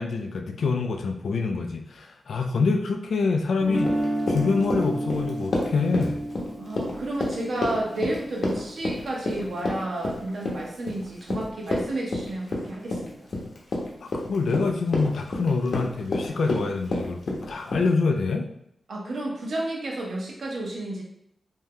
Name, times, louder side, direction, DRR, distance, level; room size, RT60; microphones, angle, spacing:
voice 1, 0.0-6.2 14.0-18.4, left 4 dB, 85° left, 4 dB, 0.3 m, -26 dB
Guitar, 3.6-9.6, right 1 dB, 15° right, 0.4 m, -32 dB
Run, 3.8-17.9, left 2 dB, 65° left, 0.7 m, -30 dB
voice 2, 6.6-13.3 18.9-21.0, right 1 dB, 70° right, -2 dB, 0.8 m, -31 dB
2.6 x 2.2 x 3.5 m, 0.76 s
wide cardioid pair, 110°, 0 cm